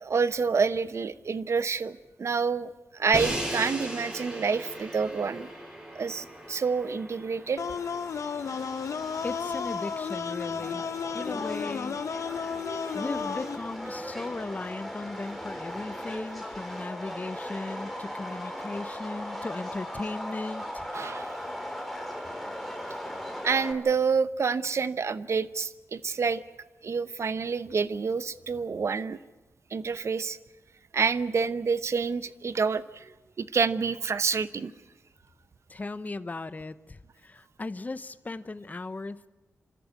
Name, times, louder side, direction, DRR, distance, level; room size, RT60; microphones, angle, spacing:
voice 1, 0.0-5.5 5.9-7.6 20.9-21.4 23.4-26.4 26.8-29.2 29.7-30.4 30.9-33.1 33.4-34.7, right 5 dB, 60° right, 14 dB, 0.9 m, -28 dB
Crash cymbal, 3.1-9.1, right 1 dB, 15° right, 6.2 m, -38 dB
sound 1, 7.6-13.6, left 6 dB, 75° left, 0.9 m, -33 dB
Subway metro underground, 7.6-23.7, equal, ahead, 3.4 m, -38 dB
voice 2, 9.2-10.8 11.1-12.0 12.9-20.9 35.7-39.3, left 3 dB, 30° left, 14 dB, 0.8 m, -37 dB
27.5 x 13.5 x 9.6 m, 1.1 s
wide cardioid pair, 90°, 5 cm